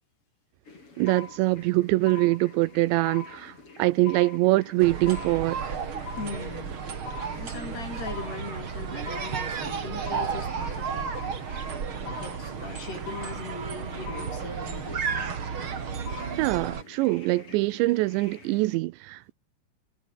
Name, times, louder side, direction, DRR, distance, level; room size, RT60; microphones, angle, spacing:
sound 1, 0.6-18.8, left 4 dB, 30° left, 5.5 m, -50 dB
voice 1, 1.0-5.6 16.4-19.3, right 20 dB, 85° right, 2.7 m, -24 dB
sound 2, 1.1-1.7 2.1-2.7 3.1-3.7 4.1-4.7 5.1-5.7 6.1-6.7 7.1-7.7 8.1-8.7 9.1-9.7 10.1-10.7 11.1-11.7 12.1-12.7 13.1-13.7 14.1-14.7 15.1-15.7 16.1-16.4, left 6 dB, 80° left, 8.1 m, -42 dB
sound 3, 4.8-16.8, right 6 dB, 40° right, 2.0 m, -33 dB
voice 2, 6.2-6.7 7.3-11.2 12.0-15.3, left 4 dB, 55° left, 10.0 m, -40 dB
omnidirectional pair, 5.5 m